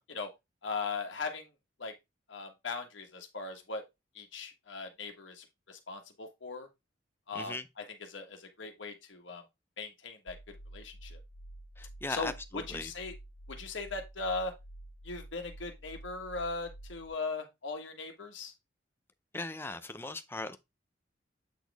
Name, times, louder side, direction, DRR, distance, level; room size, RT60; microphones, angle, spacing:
voice 1, 0.6-1.5 1.8-1.9 2.3-3.8 4.1-6.7 7.3-9.4 9.8-11.2 12.1-13.1 13.5-14.5 15.0-18.5, left 3 dB, 90° left, 1.4 m, -39 dB
sound 1, 10.3-17.1, right 1 dB, 30° left, 1.9 m, -49 dB
voice 2, 11.8-12.9 19.3-20.6, left 2 dB, 10° left, 0.5 m, -38 dB
8.2 x 4.2 x 3.4 m
head